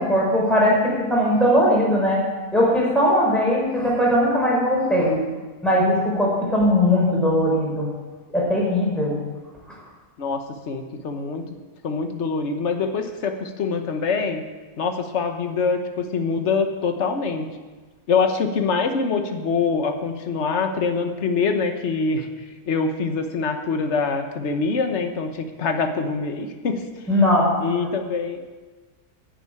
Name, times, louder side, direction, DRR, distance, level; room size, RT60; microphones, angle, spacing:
voice 1, 0.0-2.2 2.5-5.2 5.6-7.9 8.3-9.2 27.1-27.9, left 1 dB, ahead, -4 dB, 4.3 m, -19 dB
voice 2, 10.2-11.5 11.8-14.4 14.8-17.5 18.1-22.3 22.7-26.9 27.6-28.4, left 4 dB, 50° left, 6 dB, 1.3 m, -24 dB
10.5 x 7.8 x 8.7 m, 1.3 s
omnidirectional pair, 1.7 m